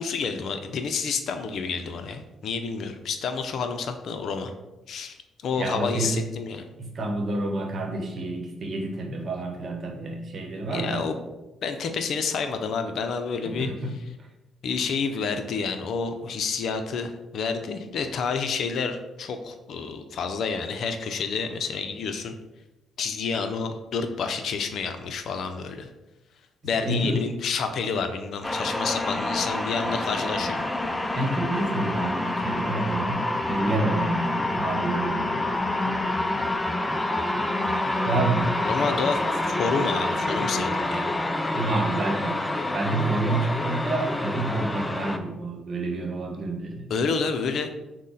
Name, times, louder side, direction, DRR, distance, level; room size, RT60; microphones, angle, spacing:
voice 1, 0.0-4.5 4.9-5.2 5.4-6.7 10.7-11.2 11.6-13.7 14.6-22.4 23.0-25.9 26.6-30.6 38.6-39.2 39.5-41.1 46.9-47.7, left 5 dB, 65° left, 7 dB, 0.5 m, -29 dB
voice 2, 5.5-6.2 6.8-11.0 13.4-13.9 14.2-14.3 26.8-27.2 31.1-35.4 38.0-39.0 41.5-42.4 42.7-46.9, right 2 dB, 50° right, 3 dB, 0.9 m, -29 dB
sound 1, 28.4-45.2, left 2 dB, 15° left, 0.4 m, -27 dB
6.1 x 2.1 x 4.0 m, 1.0 s
cardioid pair, 90°, 0 cm